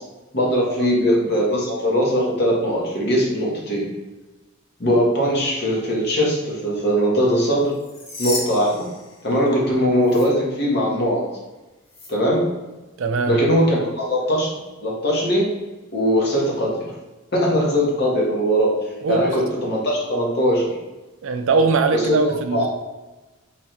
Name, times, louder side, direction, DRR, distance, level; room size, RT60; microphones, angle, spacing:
voice 1, 0.3-3.8 4.8-7.7 8.2-8.8 9.2-11.2 12.1-12.4 13.3-14.5 14.8-15.5 15.9-16.9 17.3-18.7 19.1-20.7 21.9-22.7, equal, 50° left, -3 dB, 1.0 m, -20 dB
sound 1, 7.7-9.7 10.0-10.2 11.9-12.1, left 2 dB, 30° left, 0.8 m, -33 dB
voice 2, 13.0-13.4 19.0-19.3 21.2-22.7, right 4 dB, 65° right, 7 dB, 0.4 m, -21 dB
3.3 x 2.3 x 4.2 m, 1.1 s
head